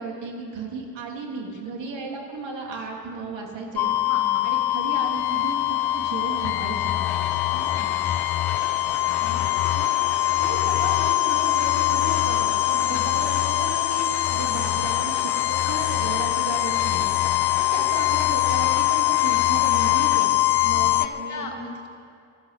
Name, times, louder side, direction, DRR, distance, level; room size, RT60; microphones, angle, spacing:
voice 1, 0.0-3.9 4.4-6.9 9.7-9.9 10.3-17.1 17.6-21.5, right 3 dB, 75° right, 0 dB, 3.1 m, -35 dB
sound 1, 3.8-21.1, left 16 dB, 55° left, 0.7 m, -23 dB
voice 2, 4.1-4.5 7.5-8.0 9.2-9.5 12.7-13.0 20.7-21.9, left 3 dB, 40° left, 2 dB, 2.2 m, -38 dB
sound 2, 5.3-20.3, left 7 dB, 80° left, 1.4 m, -37 dB
13.5 x 12.5 x 8.2 m, 2.4 s
cardioid pair, 90°, 45 cm